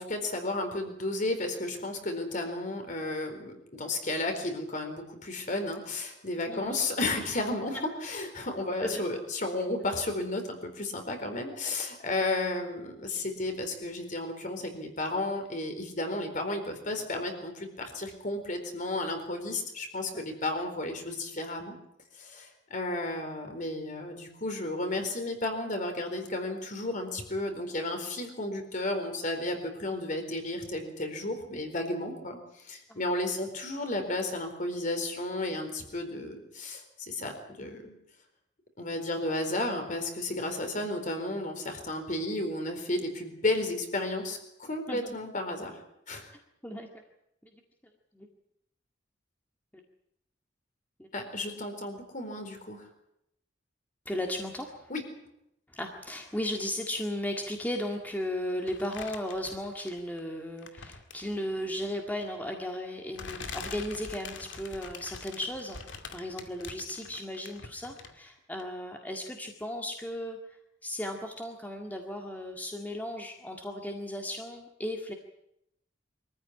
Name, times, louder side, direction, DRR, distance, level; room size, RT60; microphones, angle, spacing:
voice 1, 0.0-21.7 22.1-38.0 38.8-45.8 46.1-46.3 51.1-52.9 54.9-55.0, left 2 dB, 45° left, 5 dB, 4.3 m, -33 dB
voice 2, 6.5-6.8 8.8-9.0 11.6-11.7 20.1-20.2 32.9-33.0 44.9-45.1 46.6-47.0 48.1-48.3 49.7-49.8 51.0-51.1 54.1-54.9 55.7-70.4 70.8-75.1, left 1 dB, 10° left, 2 dB, 1.9 m, -36 dB
sound 1, 58.7-60.2 60.6-61.4 62.4-62.5 63.2-68.3 68.6-68.7, left 4 dB, 85° left, 2.3 m, -44 dB
23.5 x 15.0 x 9.9 m, 0.80 s
head